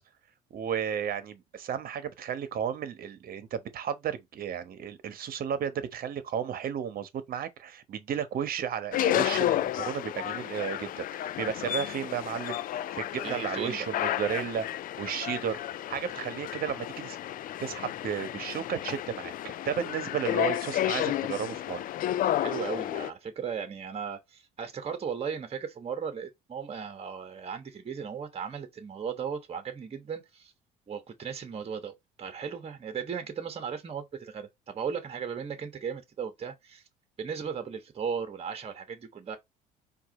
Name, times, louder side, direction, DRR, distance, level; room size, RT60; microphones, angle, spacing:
voice 1, 0.5-14.6 15.0-15.6 15.9-17.2 17.6-19.3 19.6-21.8, right 8 dB, 55° right, 1.1 m, -33 dB
sound 1, 8.9-23.1, left 12 dB, 50° left, 0.4 m, -32 dB
voice 2, 13.2-13.8 22.3-30.5 30.9-36.8 37.2-39.4, right 6 dB, 35° right, 1.3 m, -36 dB
4.7 x 2.7 x 3.8 m
supercardioid pair, 85°, 19 cm